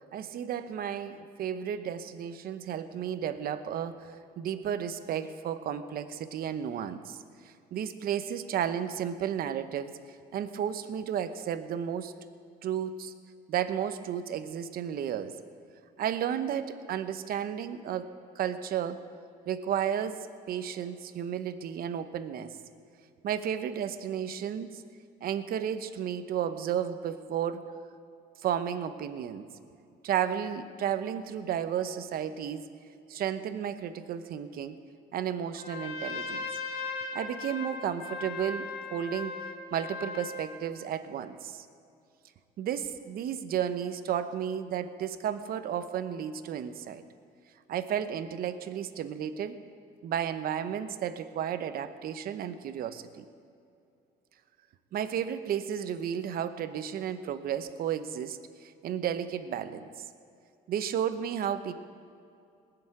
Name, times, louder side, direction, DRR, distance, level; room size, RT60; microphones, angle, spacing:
voice 1, 0.1-7.2 7.4-10.0 10.3-12.1 12.6-13.1 13.5-15.3 16.0-18.1 18.3-19.0 19.5-22.6 23.2-24.8 25.2-27.6 28.4-29.5 30.0-32.6 33.1-34.8 35.1-36.5 37.1-39.3 39.7-41.7 42.6-47.0 47.7-49.6 50.0-53.3 54.9-59.9 60.7-61.7, right 9 dB, 60° right, 10 dB, 0.9 m, -33 dB
Trumpet, 35.5-40.6, left 4 dB, 70° left, 2.1 m, -38 dB
19.5 x 6.9 x 8.8 m, 2.5 s
cardioid pair, 110°, 17 cm